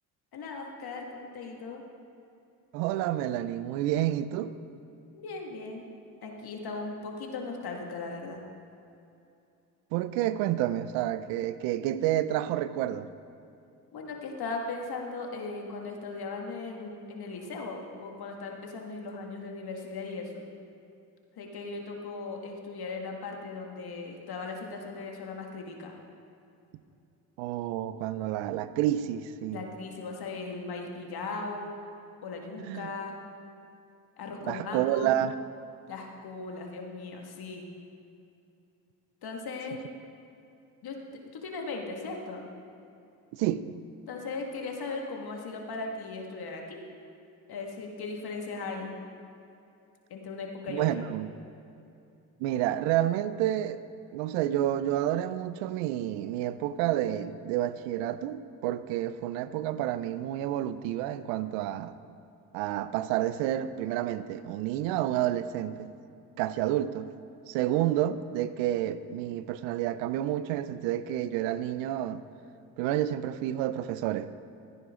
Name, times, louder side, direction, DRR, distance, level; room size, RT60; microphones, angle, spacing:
voice 1, 0.3-1.8 5.1-5.9 6.2-8.4 13.9-20.4 21.4-25.9 29.5-31.8 32.2-33.2 34.2-35.1 35.9-37.6 39.2-39.8 40.8-41.0 41.3-42.4 44.1-46.8 47.5-48.9 50.1-51.0, left 3 dB, 55° left, 1 dB, 2.0 m, -38 dB
voice 2, 2.7-4.5 9.9-13.1 27.4-29.6 32.7-32.9 34.5-35.4 43.3-43.6 50.7-51.3 52.4-53.8 54.1-61.9 62.5-65.9 66.4-67.1 67.5-72.2 72.8-74.3, right 12 dB, 80° right, 14 dB, 0.6 m, -29 dB
16.5 x 9.7 x 3.8 m, 2.7 s
hypercardioid pair, 55°, 44 cm